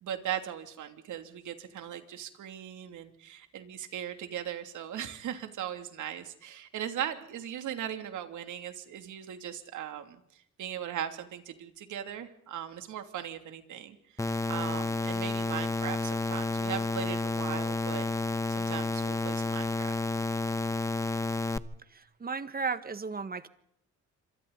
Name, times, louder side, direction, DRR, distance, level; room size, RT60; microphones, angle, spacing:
voice 1, 0.0-10.2 10.6-18.1 18.5-20.0, right 10 dB, 75° right, 6 dB, 2.9 m, -38 dB
sound 1, 14.2-21.6, left 3 dB, 10° left, 1.0 m, -31 dB
voice 2, 21.9-23.5, right 5 dB, 30° right, 11 dB, 1.7 m, -35 dB
27.0 x 24.0 x 4.1 m, 0.72 s
cardioid pair, 90°, 30 cm